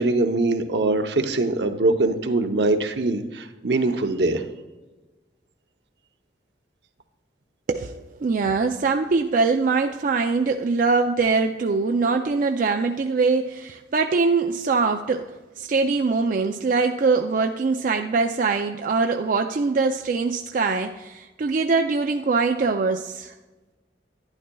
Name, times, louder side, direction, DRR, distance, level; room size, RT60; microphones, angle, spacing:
voice 1, 0.0-4.4, right 2 dB, 70° right, 6 dB, 0.8 m, -22 dB
voice 2, 7.7-23.3, right 4 dB, 50° right, 5 dB, 0.4 m, -23 dB
11.5 x 10.5 x 2.3 m, 1.2 s
head